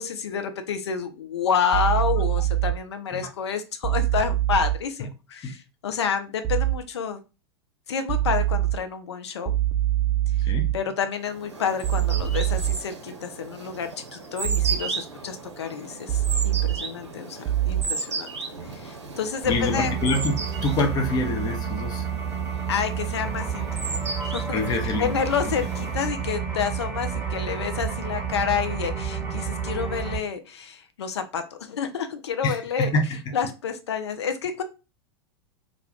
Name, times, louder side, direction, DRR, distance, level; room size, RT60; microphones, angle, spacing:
voice 1, 0.0-7.2 7.9-9.5 10.7-17.4 17.7-18.3 18.7-19.9 22.7-24.0 24.2-24.6 25.0-32.9 33.3-34.6, left 7 dB, 75° left, 0.4 m, -29 dB
sound 1, 1.7-2.7 3.8-4.8 6.4-6.8 8.1-8.7 9.5-10.7 11.8-12.8 14.4-14.8 16.1-16.7 17.5-17.8, right 13 dB, 40° right, 0.4 m, -23 dB
sound 2, 11.3-26.2, right 4 dB, 85° right, 0.6 m, -35 dB
sound 3, 19.4-30.2, right 7 dB, 20° right, 1.1 m, -30 dB
voice 2, 19.5-22.1 24.5-25.1 32.4-33.0, left 2 dB, 30° left, 0.6 m, -26 dB
2.4 x 2.2 x 3.4 m
hypercardioid pair, 90°, 14 cm